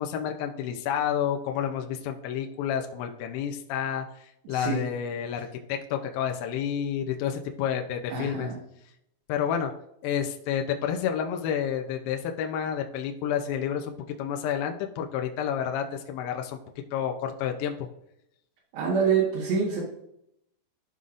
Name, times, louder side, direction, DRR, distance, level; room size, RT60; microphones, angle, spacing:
voice 1, 0.0-8.5 9.3-9.7 10.0-16.6 16.9-17.9, left 8 dB, 80° left, 3 dB, 2.2 m, -30 dB
voice 2, 4.5-4.8 8.1-8.6 18.7-19.8, right 6 dB, 75° right, -5 dB, 3.6 m, -26 dB
13.5 x 5.4 x 2.5 m, 0.77 s
omnidirectional pair, 5.0 m